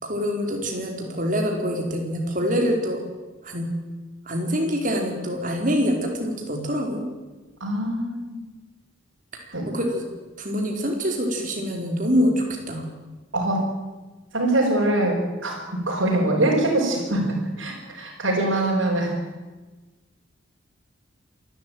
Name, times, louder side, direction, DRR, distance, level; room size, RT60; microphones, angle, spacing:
voice 1, 0.0-3.0 3.4-3.7 4.3-7.0 9.3-10.0 10.4-12.9, equal, 40° right, 2 dB, 4.6 m, -25 dB
voice 2, 7.6-8.4 9.5-9.6 13.3-13.7 14.3-19.1, right 1 dB, 70° right, -6 dB, 5.9 m, -23 dB
27.0 x 13.0 x 9.4 m, 1.2 s
head